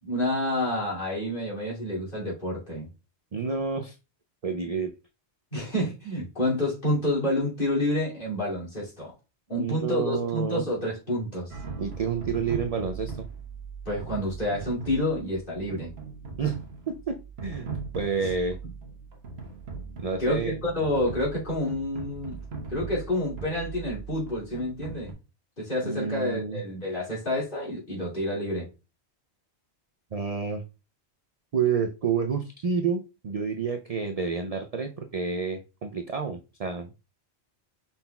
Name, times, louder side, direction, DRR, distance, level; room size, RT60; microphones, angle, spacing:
voice 1, 0.0-2.9 5.5-9.1 9.5-11.5 13.8-15.9 20.2-22.4 22.7-25.1 25.6-28.7, left 1 dB, 50° left, -4 dB, 2.7 m, -28 dB
voice 2, 3.3-4.0 4.4-4.9 9.6-10.6 11.8-13.3 16.4-16.6 16.9-17.7 17.9-18.6 20.0-20.6 25.8-26.6 30.1-30.6 31.5-36.9, right 5 dB, 50° right, 5 dB, 0.4 m, -29 dB
sound 1, 11.5-25.1, right 5 dB, 70° right, 1.4 m, -39 dB
5.6 x 4.2 x 2.2 m, 0.29 s
omnidirectional pair, 1.1 m